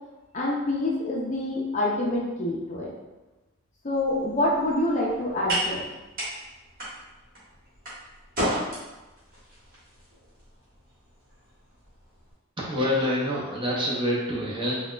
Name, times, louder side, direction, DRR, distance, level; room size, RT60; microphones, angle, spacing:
voice 1, 0.3-2.9 3.8-5.8, left 1 dB, 35° left, -3 dB, 0.5 m, -26 dB
sound 1, 3.9-12.3, equal, 45° right, 1.3 m, -35 dB
voice 2, 12.6-14.8, left 1 dB, 25° right, -5 dB, 0.7 m, -26 dB
3.9 x 2.2 x 2.4 m, 1.1 s
head